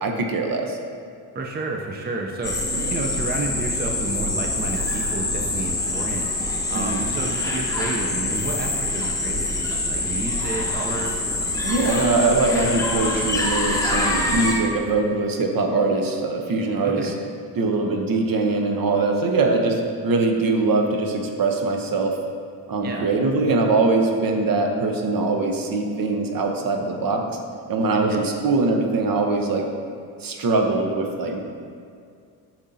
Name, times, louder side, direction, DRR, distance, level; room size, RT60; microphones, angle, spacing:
voice 1, 0.0-0.8 2.7-2.9 6.7-7.1 11.6-17.1 17.6-22.2 22.7-27.3 27.7-29.7 30.2-31.4, right 3 dB, 45° right, 3 dB, 1.0 m, -22 dB
voice 2, 1.3-6.2 6.7-9.6 9.9-11.1 16.8-17.2 22.8-23.1 27.9-28.2, right 2 dB, 20° right, 1 dB, 0.7 m, -30 dB
sound 1, 2.4-14.5, left 2 dB, 5° left, 1.3 m, -25 dB
8.3 x 6.2 x 2.8 m, 2.2 s
hypercardioid pair, 60°, 48 cm